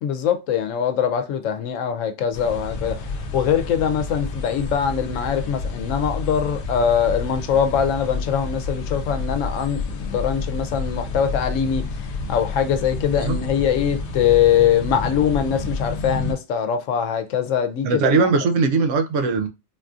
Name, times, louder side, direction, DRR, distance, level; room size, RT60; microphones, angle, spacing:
voice 1, 0.0-18.2, left 8 dB, 85° left, 0.9 m, -22 dB
sound 1, 2.3-16.4, left 3 dB, 60° left, 0.7 m, -29 dB
voice 2, 17.8-19.5, right 4 dB, 80° right, 0.9 m, -19 dB
4.0 x 2.3 x 2.5 m
omnidirectional pair, 1.3 m